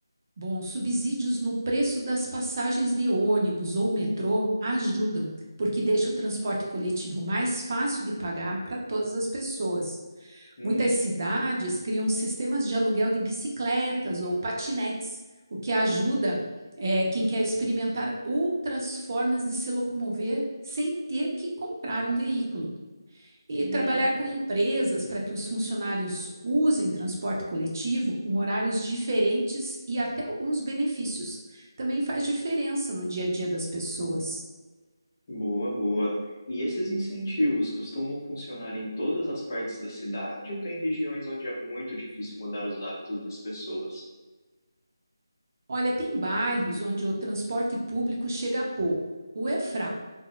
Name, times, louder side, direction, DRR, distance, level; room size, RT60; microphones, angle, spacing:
voice 1, 0.4-5.3 5.6-15.2 15.6-16.4 16.8-22.7 23.5-34.4 45.7-48.9 49.3-49.9, right 1 dB, 45° right, -2 dB, 0.6 m, -28 dB
voice 2, 10.6-10.9 23.5-24.0 35.3-36.1 36.5-44.1, equal, 40° left, -5 dB, 0.9 m, -31 dB
3.7 x 2.1 x 2.2 m, 1.2 s
figure-of-eight pair, 165°, 2 cm